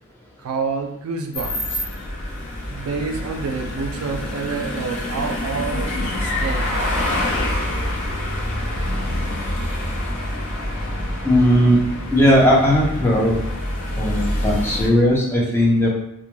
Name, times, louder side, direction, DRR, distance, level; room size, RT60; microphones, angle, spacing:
voice 1, 0.4-1.8 2.6-6.8, right 4 dB, 70° right, 5 dB, 0.3 m, -28 dB
sound 1, 1.3-14.9, left 1 dB, 60° left, 0.6 m, -26 dB
voice 2, 11.2-11.8 12.1-13.5 14.0-15.9, equal, 10° left, -4 dB, 0.4 m, -17 dB
2.2 x 2.1 x 3.0 m, 0.81 s
head